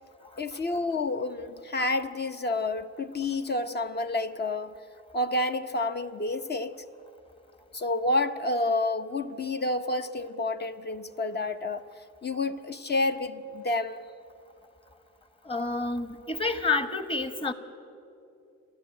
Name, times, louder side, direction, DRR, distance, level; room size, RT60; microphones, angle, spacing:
voice 1, 0.4-4.8 5.1-6.8 7.7-11.8 12.2-14.0, left 2 dB, 35° left, 8 dB, 0.9 m, -29 dB
voice 2, 15.4-17.5, left 3 dB, 20° left, 10 dB, 1.4 m, -29 dB
29.0 x 11.0 x 8.9 m, 2.6 s
cardioid pair, 90°, 30 cm